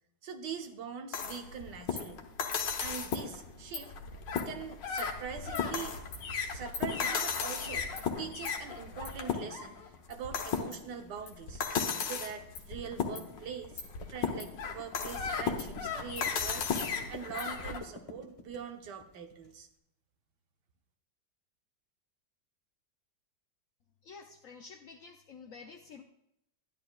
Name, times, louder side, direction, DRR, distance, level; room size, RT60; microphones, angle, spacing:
voice 1, 0.2-2.2 2.8-3.9 4.5-6.0 6.4-7.9 8.2-9.8 10.1-11.6 12.0-13.8 14.1-16.7 17.1-19.7, right 7 dB, 75° right, 6 dB, 1.5 m, -43 dB
sound 1, 1.1-17.8, left 6 dB, 80° left, 1.6 m, -35 dB
sound 2, 7.9-19.5, left 4 dB, 25° left, 0.8 m, -51 dB
voice 2, 24.0-26.0, left 5 dB, 65° left, 5 dB, 0.8 m, -50 dB
12.0 x 10.5 x 2.3 m, 0.77 s
omnidirectional pair, 1.9 m